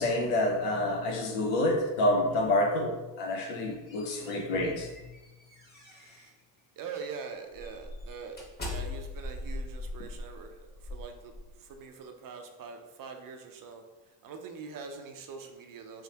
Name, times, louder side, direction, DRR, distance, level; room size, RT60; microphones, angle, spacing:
voice 1, 0.0-4.9, left 1 dB, 80° left, 3 dB, 0.9 m, -28 dB
sound 1, 3.6-6.4 6.9-7.1 7.5-11.8, left 2 dB, 20° left, 1.1 m, -41 dB
voice 2, 6.8-8.4 8.6-11.3 11.6-13.8 14.2-16.0, right 5 dB, 45° right, 5 dB, 0.6 m, -43 dB
3.5 x 3.1 x 2.9 m, 1.1 s
supercardioid pair, 95°, 49 cm